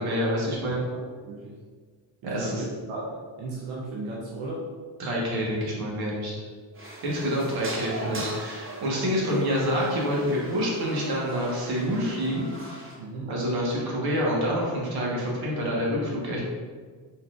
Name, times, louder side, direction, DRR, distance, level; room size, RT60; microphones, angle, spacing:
voice 1, 0.0-0.8 2.2-2.6 5.0-6.3 7.0-12.5 13.3-16.4, equal, 55° right, -4 dB, 1.3 m, -27 dB
voice 2, 0.9-1.5 2.2-4.7 7.1-7.3 13.0-13.3, right 2 dB, 85° right, -3 dB, 0.8 m, -36 dB
sound 1, 6.7-12.9, right 1 dB, 25° right, 0.8 m, -39 dB
4.2 x 4.0 x 2.4 m, 1.6 s
cardioid pair, 130°, 46 cm